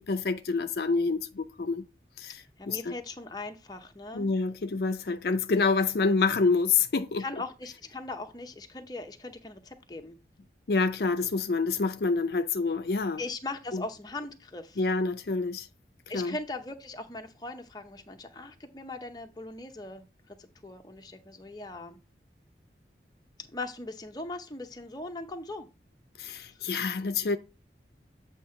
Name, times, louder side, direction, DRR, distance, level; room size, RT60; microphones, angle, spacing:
voice 1, 0.0-1.8 2.2-2.4 2.7-2.9 4.1-7.2 10.7-13.2 13.7-13.8 14.8-15.7 16.1-16.4 26.2-27.4, left 4 dB, 65° left, 0.5 m, -27 dB
voice 2, 2.6-4.3 7.2-10.2 13.2-14.8 16.1-20.0 20.4-22.0 23.4-25.7 26.4-26.5, left 2 dB, 20° left, 0.7 m, -39 dB
8.0 x 2.8 x 5.6 m
head